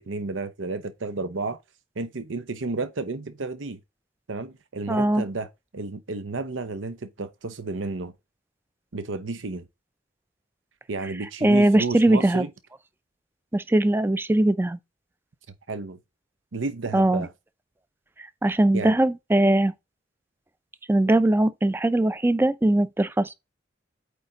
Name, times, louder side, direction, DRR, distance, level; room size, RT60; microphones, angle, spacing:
voice 1, 0.0-1.6 2.0-3.8 4.3-8.1 8.9-9.7 10.9-12.5 15.7-16.0 16.5-17.3 18.7-19.0, right 3 dB, 90° right, 0.8 m, -32 dB
voice 2, 4.9-5.2 11.4-12.5 13.5-14.8 16.9-17.2 18.4-19.7 20.9-23.3, right 1 dB, 10° right, 0.4 m, -20 dB
8.5 x 3.4 x 3.9 m
head